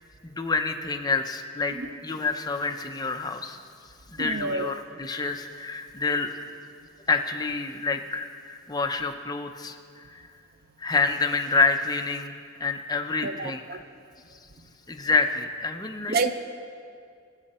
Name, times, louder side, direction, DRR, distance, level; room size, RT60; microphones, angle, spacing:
voice 1, 0.2-1.8 2.0-3.6 4.1-6.3 7.1-9.8 10.1-10.2 10.8-12.3 12.6-13.8 14.9-16.2, left 4 dB, 20° left, 5 dB, 0.7 m, -27 dB
voice 2, 4.2-4.7 13.2-13.3 13.7-13.8 16.1-16.3, right 3 dB, 55° right, 9 dB, 0.6 m, -26 dB
22.5 x 7.9 x 4.3 m, 2.3 s
head